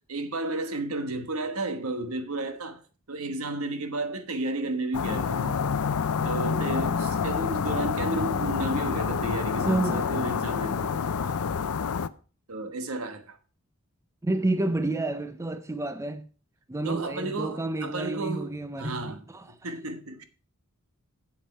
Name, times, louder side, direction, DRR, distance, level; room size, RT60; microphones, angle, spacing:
voice 1, 0.1-2.8 3.1-5.6 6.2-11.4 12.5-13.4 16.8-20.2, right 2 dB, 70° right, 1.3 m, -33 dB
sound 1, 4.9-12.1, left 6 dB, 75° left, 0.5 m, -28 dB
voice 2, 9.7-10.1 14.2-16.3 16.7-19.6, right 2 dB, 15° right, 0.5 m, -29 dB
7.9 x 7.9 x 5.5 m
head